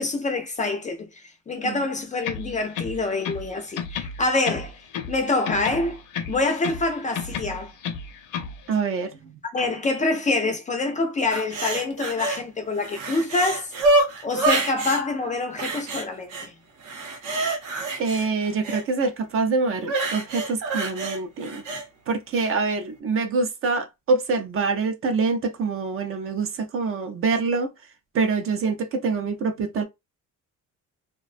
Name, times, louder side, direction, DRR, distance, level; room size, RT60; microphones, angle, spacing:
voice 1, 0.0-4.8 5.1-6.0 6.3-7.7 9.5-13.7 14.2-16.5, left 3 dB, 25° left, 0.4 m, -26 dB
sound 1, 2.2-3.5 3.8-5.2 5.5-6.9 7.1-8.6, left 6 dB, 65° left, 0.6 m, -32 dB
voice 2, 8.7-9.4 18.0-21.6 22.1-27.7 28.1-29.8, right 4 dB, 45° right, 0.4 m, -25 dB
sound 2, 11.3-12.4 12.8-15.0 15.6-16.5 16.8-18.8 19.8-21.8 22.3-22.5, right 2 dB, 70° right, 0.8 m, -26 dB
2.4 x 2.2 x 2.4 m
cardioid pair, 165°, 33 cm